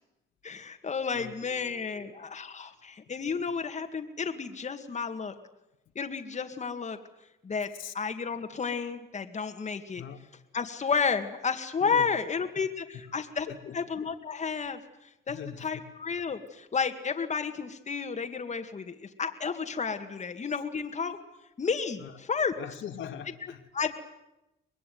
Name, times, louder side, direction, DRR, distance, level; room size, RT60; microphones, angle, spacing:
voice 1, 0.4-5.3 6.0-7.0 7.4-7.7 7.9-10.0 10.5-13.5 13.7-14.8 15.3-21.2 21.6-22.5 23.7-23.9, left 5 dB, 35° left, 6 dB, 2.1 m, -32 dB
voice 2, 1.1-2.1 7.8-7.9 9.9-10.2 11.8-12.1 13.5-13.8 15.3-15.7 22.0-22.1 22.6-23.6, left 9 dB, 75° left, 4 dB, 2.5 m, -41 dB
24.5 x 20.5 x 9.5 m, 0.92 s
cardioid pair, 90°, 20 cm